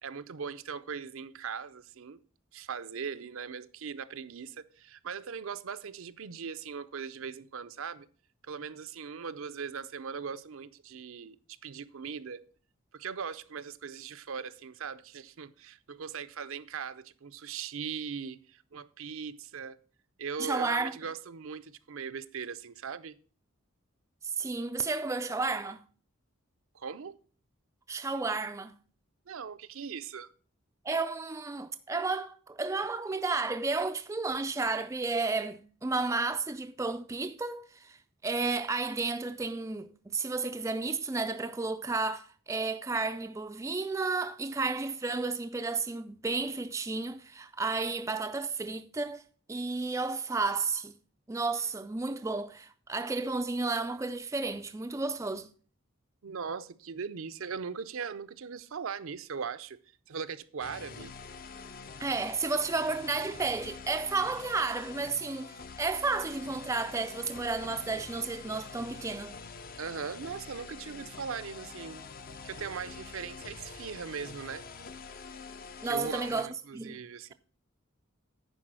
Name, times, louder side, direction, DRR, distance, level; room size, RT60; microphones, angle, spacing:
voice 1, 0.0-2.2 2.5-8.1 8.4-12.5 12.9-19.8 20.2-23.2 26.7-27.2 29.3-30.3 56.2-59.8 60.1-61.1 69.8-72.1 72.4-74.6 75.8-77.3, right 6 dB, 75° right, 0.6 m, -39 dB
voice 2, 20.4-21.0 24.2-25.8 27.9-28.7 30.8-49.2 49.5-50.9 51.3-55.5 62.0-69.4 75.8-76.5 76.7-77.0, right 3 dB, 15° right, 0.3 m, -32 dB
sound 1, 60.6-76.4, left 5 dB, 45° left, 0.6 m, -46 dB
10.5 x 4.8 x 6.2 m
head